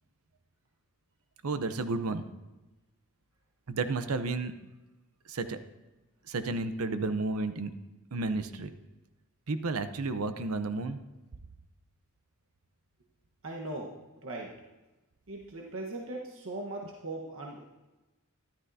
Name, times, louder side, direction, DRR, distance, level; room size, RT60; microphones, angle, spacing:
voice 1, 1.4-2.2 3.7-4.5 5.3-5.6 6.3-7.7 8.1-8.7 9.5-11.0, right 3 dB, 80° right, 11 dB, 0.7 m, -32 dB
voice 2, 13.4-14.0 14.2-14.6 15.3-17.6, right 2 dB, 60° right, -1 dB, 1.2 m, -39 dB
13.5 x 12.0 x 2.7 m, 1.1 s
head